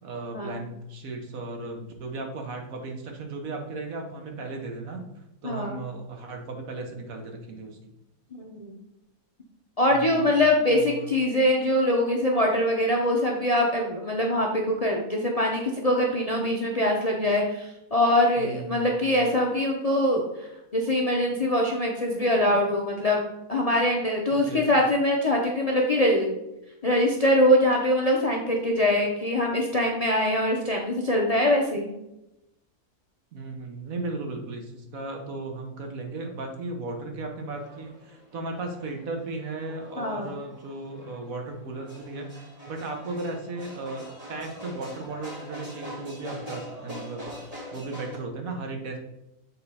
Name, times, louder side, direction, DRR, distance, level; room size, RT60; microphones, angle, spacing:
voice 1, 0.0-5.0 5.4-7.8 9.9-10.4 10.7-11.1 18.4-19.1 24.3-24.7 33.3-42.3 42.7-47.3 47.7-49.0, right 2 dB, 70° right, 3 dB, 1.4 m, -36 dB
voice 2, 5.4-5.8 8.3-8.7 9.8-23.2 23.5-26.3 26.8-31.9 40.0-40.3, left 1 dB, 35° left, 0 dB, 0.6 m, -23 dB
sound 1, 37.6-48.2, equal, 25° right, 2.0 m, -43 dB
6.8 x 3.9 x 4.1 m, 0.88 s
omnidirectional pair, 1.6 m